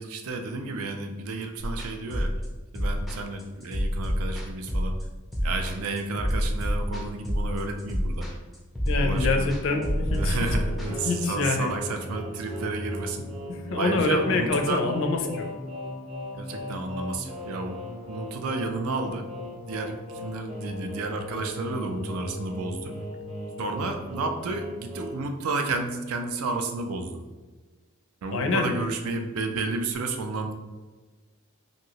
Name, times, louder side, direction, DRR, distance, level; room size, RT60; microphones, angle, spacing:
voice 1, 0.0-2.3 2.7-4.9 5.4-8.3 8.9-9.5 10.1-13.3 13.8-14.8 16.3-19.3 19.7-22.9 23.6-27.2 28.2-30.5, right 3 dB, 65° right, 5 dB, 0.4 m, -31 dB
sound 1, 1.6-10.9, equal, ahead, 0.4 m, -28 dB
voice 2, 8.9-10.4 11.1-11.7 13.5-15.5 28.3-28.7, left 3 dB, 60° left, 4 dB, 0.4 m, -26 dB
sound 2, 9.7-25.2, left 1 dB, 30° right, 0.7 m, -37 dB
2.9 x 2.7 x 2.8 m, 1.3 s
head